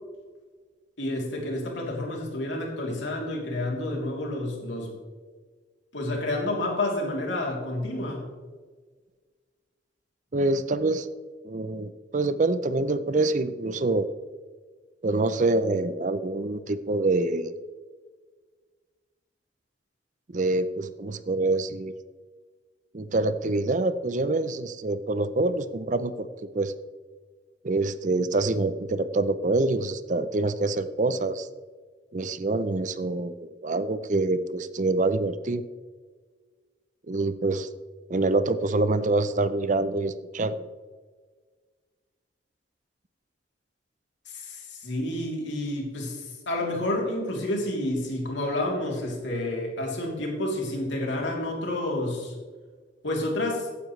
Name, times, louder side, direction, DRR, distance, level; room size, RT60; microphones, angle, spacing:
voice 1, 1.0-4.9 5.9-8.3 44.2-52.4 53.0-53.7, left 1 dB, 80° left, -1 dB, 3.3 m, -29 dB
voice 2, 10.3-11.1 11.4-14.1 15.0-17.5 20.3-21.9 22.9-26.3 26.5-26.7 27.6-31.5 32.1-35.6 37.1-37.7 38.1-40.7, right 2 dB, 40° right, 13 dB, 0.5 m, -26 dB
15.0 x 9.6 x 3.2 m, 1.5 s
head